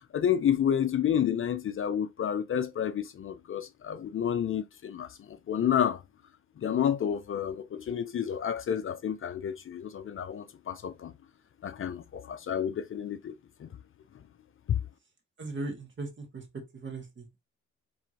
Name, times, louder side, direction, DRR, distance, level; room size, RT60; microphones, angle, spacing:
voice 1, 0.1-6.0 6.6-11.1 11.6-13.3 13.6-13.7 14.7-14.8, left 9 dB, 45° left, 0.6 m, -30 dB
voice 2, 15.4-16.4 16.7-17.4, right 2 dB, 40° right, 1.8 m, -38 dB
4.8 x 3.4 x 2.7 m
cardioid pair, 90°, 30 cm